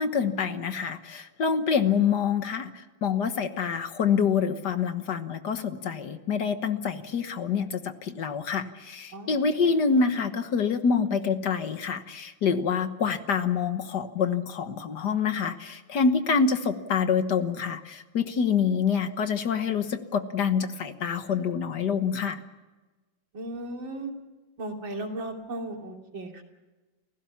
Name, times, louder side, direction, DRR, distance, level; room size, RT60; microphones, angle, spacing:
voice 1, 0.0-22.4, left 6 dB, 60° left, 9 dB, 1.8 m, -26 dB
voice 2, 9.1-9.4 23.3-24.1 24.6-26.3, right 1 dB, 75° right, 2 dB, 3.7 m, -35 dB
29.5 x 16.0 x 7.2 m, 1.2 s
omnidirectional pair, 2.1 m